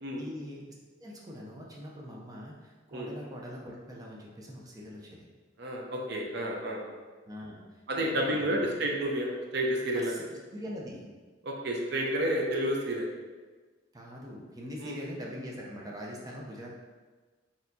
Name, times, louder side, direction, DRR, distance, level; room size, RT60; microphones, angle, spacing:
voice 1, 0.1-0.7 1.0-5.3 7.3-8.8 9.9-11.1 13.9-16.7, equal, 20° right, -3 dB, 0.5 m, -43 dB
voice 2, 5.6-6.8 7.9-10.1 11.4-13.1 14.8-15.0, right 1 dB, 65° right, -1 dB, 0.6 m, -30 dB
4.3 x 3.5 x 2.7 m, 1.4 s
head